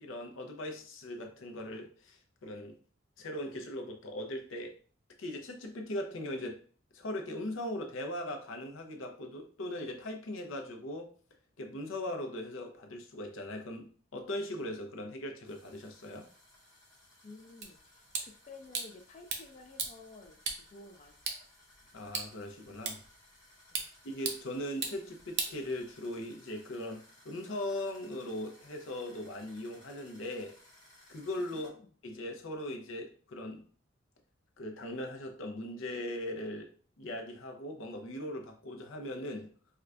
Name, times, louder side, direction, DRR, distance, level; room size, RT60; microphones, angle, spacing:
voice 1, 0.0-2.8 3.2-4.8 5.2-6.6 6.9-11.1 11.6-13.9 14.1-16.3 21.9-23.0 24.0-30.6 31.1-31.8 32.0-33.6 34.6-36.7 37.0-39.5, left 1 dB, 80° left, 3 dB, 0.6 m, -39 dB
sound 1, 15.4-31.7, left 1 dB, 20° left, 1.0 m, -61 dB
voice 2, 17.2-21.5 23.7-23.9 31.4-31.5 31.8-31.9, left 3 dB, 35° left, 3 dB, 0.3 m, -53 dB
sound 2, 17.6-26.2, right 5 dB, 60° right, 0.6 m, -41 dB
4.6 x 2.2 x 2.4 m, 0.42 s
head